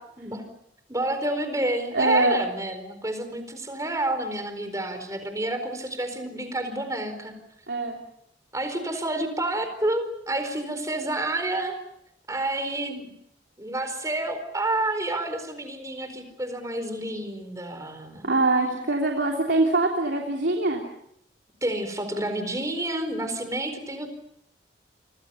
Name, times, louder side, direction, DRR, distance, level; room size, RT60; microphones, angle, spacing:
voice 1, 0.9-7.3 8.5-11.8 12.3-13.1 13.6-18.3 21.6-24.1, right 1 dB, 20° right, 8 dB, 4.4 m, -29 dB
voice 2, 1.9-2.4 7.7-8.0 18.2-20.8, right 2 dB, 80° right, 0 dB, 3.2 m, -23 dB
29.5 x 26.0 x 5.7 m, 0.75 s
head